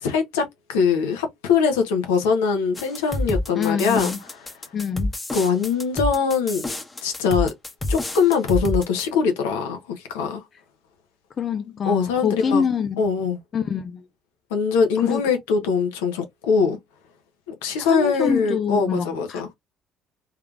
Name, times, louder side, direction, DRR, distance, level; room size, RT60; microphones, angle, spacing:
voice 1, 0.0-4.5 5.3-6.7 7.0-7.5 7.9-9.8 10.1-10.4 11.8-12.6 13.0-13.4 14.5-16.8 17.5-19.5, left 5 dB, 80° left, 1.1 m, -22 dB
sound 1, 2.7-9.1, left 1 dB, 20° left, 1.1 m, -28 dB
voice 2, 3.6-4.2 4.7-5.1 11.4-13.0 13.5-14.0 15.0-15.2 17.8-19.5, left 6 dB, 45° left, 0.7 m, -25 dB
3.5 x 3.4 x 2.5 m
hypercardioid pair, 55°, 0 cm